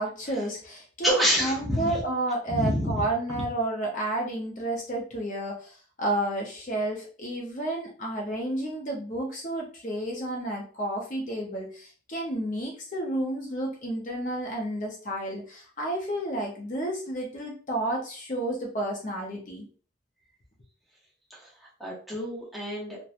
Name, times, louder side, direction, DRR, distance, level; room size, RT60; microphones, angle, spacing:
voice 1, 0.0-19.6, right 1 dB, 40° left, -1 dB, 0.6 m, -31 dB
voice 2, 1.0-2.0 2.5-3.0 21.3-21.4 21.8-23.0, equal, ahead, -6 dB, 0.7 m, -27 dB
2.9 x 2.1 x 2.4 m, 0.39 s
head